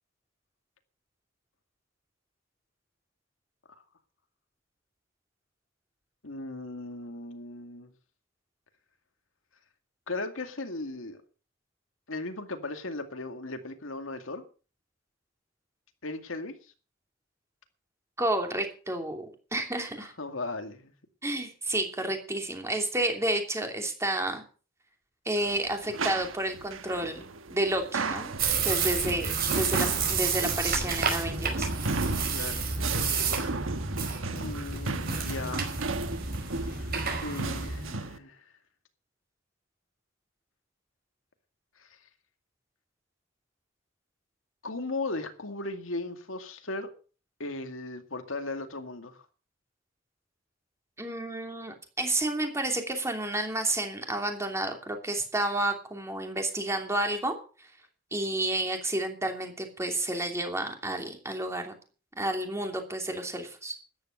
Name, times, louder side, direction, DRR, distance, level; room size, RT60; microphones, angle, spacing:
voice 1, 6.2-7.9 10.1-11.2 12.1-14.4 16.0-16.6 20.0-20.9 32.3-32.7 34.3-35.7 36.5-36.9 37.2-38.4 41.8-41.9 44.6-46.9 47.4-49.2, left 2 dB, 90° left, 2.2 m, -37 dB
voice 2, 18.2-19.3 19.5-20.1 21.2-24.4 25.2-28.3 28.6-31.7 51.0-57.3 58.1-61.7 62.2-63.7, right 1 dB, 15° right, 3.0 m, -30 dB
sound 1, 25.4-38.2, right 3 dB, 80° right, 1.3 m, -35 dB
sound 2, 28.4-37.9, right 5 dB, 50° right, 4.9 m, -30 dB
13.5 x 10.0 x 6.6 m
head